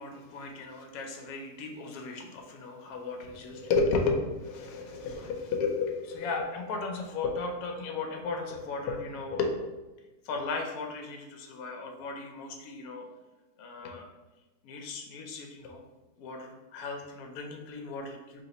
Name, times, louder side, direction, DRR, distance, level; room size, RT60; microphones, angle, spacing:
voice 1, 0.0-9.7 10.2-13.1 13.6-14.1 14.6-15.8 16.2-18.4, left 4 dB, 70° left, 3 dB, 1.0 m, -34 dB
2.9 x 2.9 x 4.0 m, 1.1 s
omnidirectional pair, 1.8 m